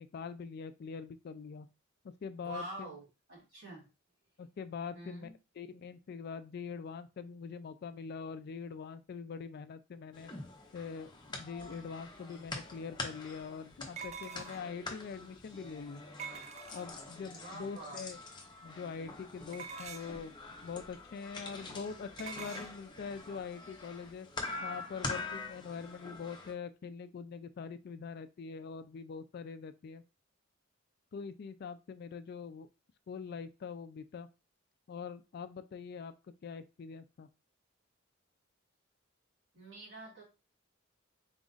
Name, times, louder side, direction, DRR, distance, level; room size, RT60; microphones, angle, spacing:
voice 1, 0.0-1.7 2.2-2.9 4.4-5.3 5.6-10.3 10.7-16.0 16.7-18.2 18.6-20.4 20.6-24.3 24.6-30.0 31.1-32.7 33.1-34.3 34.9-36.1 36.4-37.3, left 5 dB, 50° left, 11 dB, 0.3 m, -43 dB
voice 2, 2.4-3.9 4.9-5.3 17.3-18.0 39.5-40.2, right 2 dB, 60° right, -3 dB, 2.2 m, -46 dB
sound 1, 10.1-26.5, left 3 dB, 20° left, 0.7 m, -45 dB
sound 2, 12.4-12.5 14.0-14.8 16.2-17.1 19.5-20.2 22.2-22.7, right 6 dB, 35° right, 0.4 m, -45 dB
4.0 x 2.4 x 3.8 m, 0.29 s
head